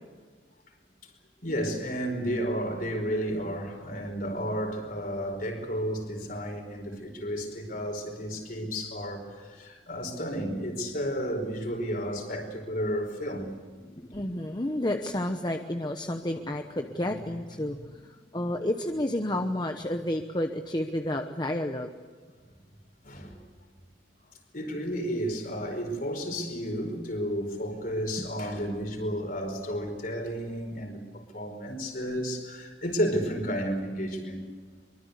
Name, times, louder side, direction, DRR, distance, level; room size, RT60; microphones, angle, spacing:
voice 1, 1.4-13.5 22.5-22.6 23.0-23.4 24.5-34.5, equal, 45° left, 4 dB, 4.8 m, -32 dB
voice 2, 13.8-21.9, left 1 dB, 20° left, 5 dB, 1.0 m, -31 dB
24.5 x 24.0 x 8.3 m, 1.5 s
head